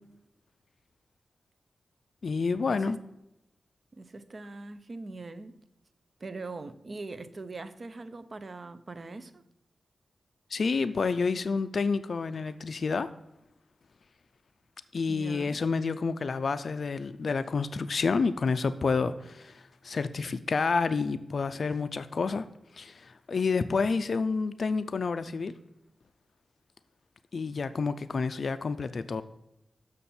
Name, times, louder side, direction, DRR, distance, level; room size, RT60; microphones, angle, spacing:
voice 1, 2.2-3.0 10.5-13.1 14.9-22.5 22.7-25.5 27.3-29.2, left 4 dB, 60° left, 12 dB, 0.3 m, -29 dB
voice 2, 3.9-5.6 6.2-9.4 15.1-15.6, right 3 dB, 45° right, 12 dB, 0.5 m, -41 dB
7.0 x 6.5 x 4.2 m, 0.86 s
wide cardioid pair, 95°, 0 cm